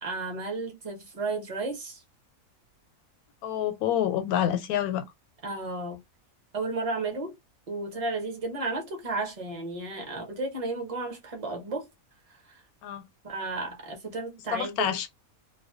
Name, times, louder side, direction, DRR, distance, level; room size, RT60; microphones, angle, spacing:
voice 1, 0.0-2.0 5.4-6.0 6.5-7.3 7.7-11.9 12.5-12.6 13.2-14.9, right 3 dB, 35° right, 0.6 m, -33 dB
voice 2, 3.4-5.0 12.8-13.0 14.5-15.1, left 10 dB, 85° left, 1.1 m, -27 dB
2.4 x 2.2 x 2.4 m
omnidirectional pair, 1.5 m